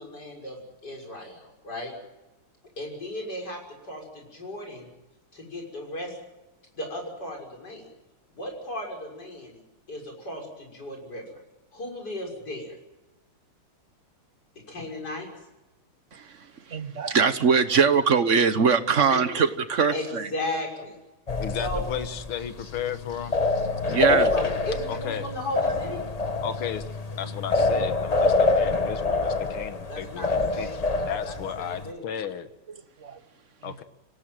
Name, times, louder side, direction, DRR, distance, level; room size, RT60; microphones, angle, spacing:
voice 1, 0.0-1.9 2.8-4.9 5.3-6.1 6.7-7.8 8.3-9.6 9.9-11.2 11.7-12.7 14.7-15.3 18.9-19.2 19.9-21.0 21.6-21.9 23.9-26.0 29.9-30.7 31.2-32.0, left 1 dB, 50° left, 6.9 m, -35 dB
voice 2, 16.1-20.3 23.9-24.3 33.0-33.2, right 6 dB, 45° right, 1.1 m, -22 dB
sound 1, 21.3-31.9, left 3 dB, 25° left, 0.8 m, -26 dB
voice 3, 21.4-23.4 24.9-25.3 26.4-26.8 27.2-32.5 33.6-33.8, left 8 dB, 80° left, 2.2 m, -34 dB
26.0 x 17.5 x 9.1 m
omnidirectional pair, 2.3 m